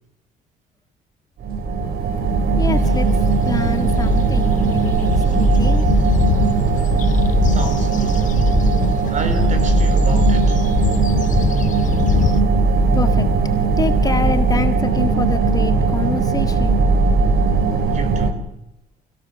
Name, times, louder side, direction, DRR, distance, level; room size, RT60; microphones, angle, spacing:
sound 1, 1.4-18.3, right 4 dB, 65° right, 2.9 m, -18 dB
voice 1, 2.6-5.9 12.9-13.3 13.8-16.8, left 4 dB, 20° left, 1.8 m, -26 dB
sound 2, 2.8-12.4, left 9 dB, 50° left, 0.8 m, -24 dB
voice 2, 7.4-8.4 9.1-10.8 17.8-18.5, right 3 dB, 45° right, 4.2 m, -32 dB
29.0 x 17.0 x 7.1 m
cardioid pair, 110°, 17 cm